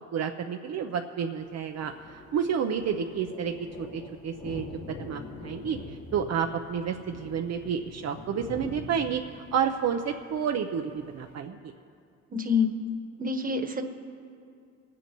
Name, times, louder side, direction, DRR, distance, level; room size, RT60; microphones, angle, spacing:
voice 1, 0.1-9.2 9.5-11.6, right 7 dB, 60° right, 5 dB, 0.7 m, -30 dB
Thunder, 1.4-11.4, left 3 dB, 65° left, 1.5 m, -45 dB
voice 2, 12.3-12.8 13.2-13.8, left 5 dB, 30° right, 5 dB, 1.3 m, -26 dB
27.0 x 9.9 x 3.0 m, 2.4 s
cardioid pair, 90°, 30 cm